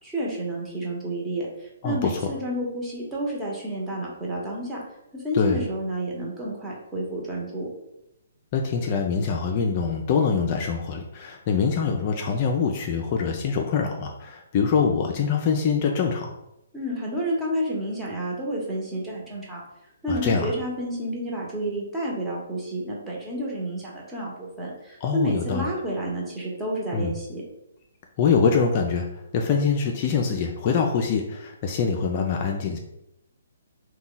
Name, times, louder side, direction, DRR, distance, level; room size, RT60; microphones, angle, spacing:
voice 1, 0.0-4.8 5.1-7.7 16.7-19.6 20.0-27.4, right 1 dB, 10° right, -4 dB, 0.9 m, -30 dB
voice 2, 1.8-2.2 5.3-5.6 8.5-16.3 20.1-20.5 25.0-25.7 26.9-27.1 28.2-32.8, left 5 dB, 40° left, 2 dB, 0.4 m, -24 dB
2.8 x 2.2 x 3.8 m, 0.84 s
hypercardioid pair, 140°, 0 cm